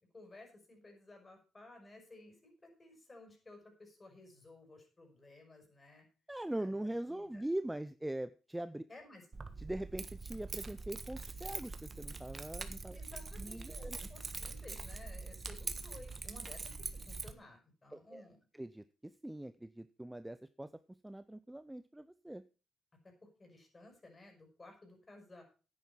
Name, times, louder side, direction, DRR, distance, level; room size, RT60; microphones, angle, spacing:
voice 1, 0.1-6.0 6.6-7.4 8.9-9.2 12.9-18.4 23.4-25.4, left 2 dB, 25° left, 3 dB, 5.9 m, -56 dB
voice 2, 6.3-8.8 9.6-13.0 13.4-14.1 17.9-18.3 18.5-20.7 21.0-22.4, right 1 dB, 10° right, 13 dB, 0.6 m, -42 dB
Keys jangling, 9.3-17.3, right 3 dB, 30° right, 1.4 m, -44 dB
10.5 x 9.5 x 5.7 m, 0.35 s
cardioid pair, 90°, 0 cm